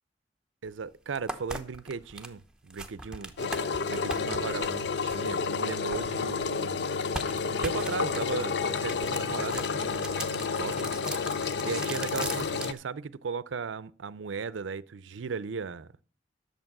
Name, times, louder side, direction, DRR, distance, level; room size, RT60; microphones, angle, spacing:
voice 1, 0.6-6.9 7.5-10.9 11.6-15.9, right 5 dB, 85° right, 0.5 m, -37 dB
sound 1, 0.7-0.8 1.1-6.5 7.0-12.8, right 2 dB, 5° right, 0.8 m, -40 dB
Engine, 3.4-12.7, left 5 dB, 60° left, 0.5 m, -30 dB
11.0 x 6.9 x 5.9 m
head